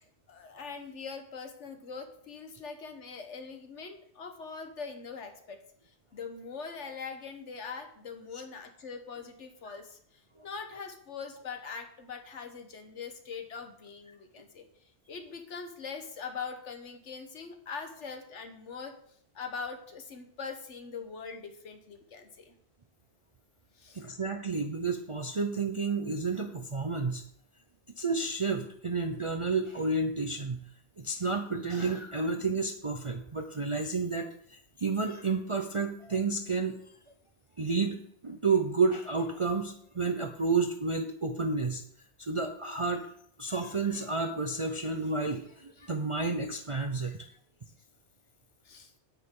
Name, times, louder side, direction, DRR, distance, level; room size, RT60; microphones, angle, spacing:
voice 1, 0.3-5.6 5.9-14.6 15.1-18.9 19.3-22.5 23.7-24.0 48.6-48.9, left 5 dB, 75° left, 6 dB, 1.4 m, -42 dB
voice 2, 24.0-27.2 28.0-30.6 31.0-36.8 37.6-41.8 42.2-43.1 43.4-47.3, right 4 dB, 35° right, 4 dB, 0.6 m, -31 dB
9.5 x 9.3 x 3.8 m, 0.65 s
omnidirectional pair, 1.2 m